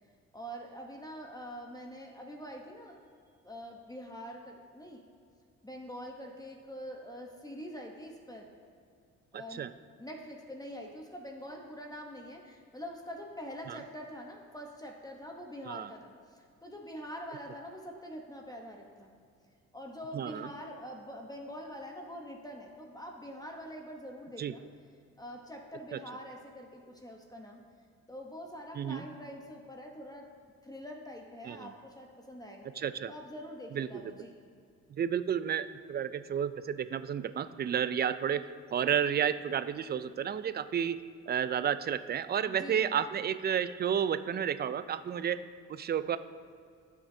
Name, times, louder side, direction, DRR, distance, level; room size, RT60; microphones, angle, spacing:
voice 1, 0.3-3.0 3.4-5.0 5.6-8.5 9.3-9.7 10.0-19.1 19.7-24.6 25.2-27.6 28.1-30.3 30.6-32.7 33.1-34.3 42.4-43.1, equal, 10° left, 1 dB, 0.9 m, -45 dB
voice 2, 9.3-9.7 13.7-13.8 15.7-15.9 20.1-20.5 24.4-24.5 28.8-29.0 31.4-31.7 32.8-33.1 33.7-33.9 34.9-41.0 41.3-45.4 45.7-46.2, right 8 dB, 35° right, 13 dB, 0.4 m, -31 dB
15.0 x 6.0 x 2.7 m, 2.3 s
cardioid pair, 90°, 30 cm